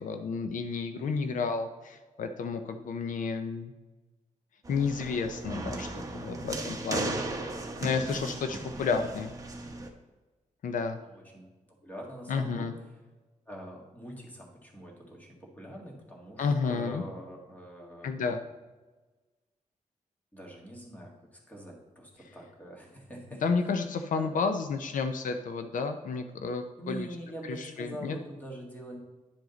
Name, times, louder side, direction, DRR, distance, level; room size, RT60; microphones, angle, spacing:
voice 1, 0.0-3.7 4.7-7.2 7.8-9.3 10.6-11.0 12.3-12.7 16.4-17.0 18.0-18.4 23.4-27.1 27.5-28.2, left 5 dB, 80° left, 7 dB, 0.6 m, -31 dB
sound 1, 4.6-9.9, right 2 dB, 25° right, 0.9 m, -36 dB
voice 2, 11.0-12.7 13.5-18.3 20.3-23.4 24.1-24.4 26.8-29.0, right 1 dB, 10° left, -2 dB, 1.8 m, -44 dB
10.5 x 4.9 x 4.0 m, 1.2 s
wide cardioid pair, 145°, 13 cm